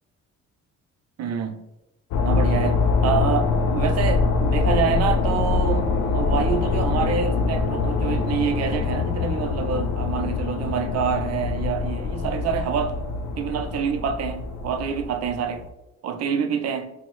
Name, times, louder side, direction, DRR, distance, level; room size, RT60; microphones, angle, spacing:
voice 1, 1.2-1.6 2.2-13.0 13.4-15.6 16.0-16.9, right 7 dB, 55° right, 0.4 m, -27 dB
sound 1, 2.1-15.7, left 4 dB, 70° left, 0.5 m, -24 dB
4.3 x 2.0 x 3.0 m
cardioid pair, 90°, 30 cm